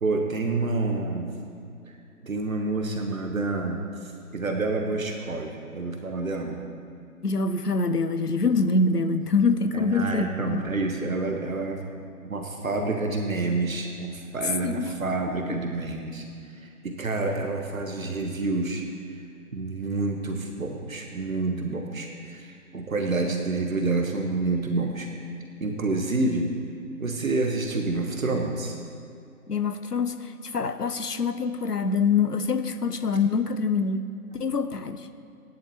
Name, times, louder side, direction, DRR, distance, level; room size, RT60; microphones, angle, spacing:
voice 1, 0.0-1.3 1.9-2.0 2.2-6.6 9.7-11.8 12.3-18.8 19.5-25.1 25.6-26.5 27.0-28.8, right 3 dB, 60° right, 3 dB, 1.3 m, -28 dB
voice 2, 7.2-10.6 14.6-14.9 15.5-15.6 29.5-34.0 34.3-35.1, left 4 dB, 85° left, 10 dB, 0.9 m, -25 dB
17.0 x 10.5 x 3.0 m, 2.6 s
figure-of-eight pair, 140°, 46 cm